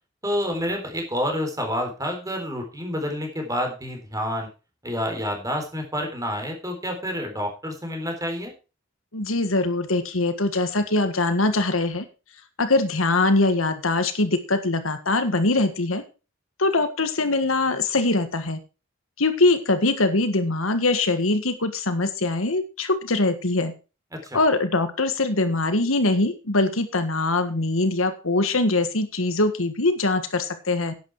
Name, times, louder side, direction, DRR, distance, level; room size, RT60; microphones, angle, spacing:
voice 1, 0.2-4.5 4.8-8.5 24.1-24.4, equal, 15° right, 3 dB, 3.8 m, -28 dB
voice 2, 9.1-12.0 12.6-16.0 16.6-18.6 19.2-23.7 24.3-30.9, left 2 dB, 80° left, 9 dB, 1.6 m, -22 dB
11.0 x 9.3 x 4.7 m, 0.32 s
head